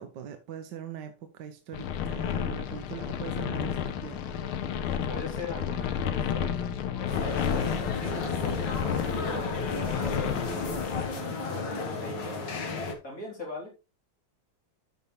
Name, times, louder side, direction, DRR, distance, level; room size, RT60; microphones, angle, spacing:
voice 1, 0.0-4.5, right 8 dB, 65° right, 1.3 m, -42 dB
sound 1, 1.7-11.1, left 8 dB, 85° left, 1.7 m, -31 dB
sound 2, 4.7-11.6, left 2 dB, 10° left, 2.7 m, -47 dB
voice 2, 4.9-12.7 13.0-13.7, left 2 dB, 40° left, 4.1 m, -41 dB
sound 3, 7.1-12.9, left 3 dB, 60° left, 2.1 m, -33 dB
12.5 x 5.4 x 3.2 m
omnidirectional pair, 2.3 m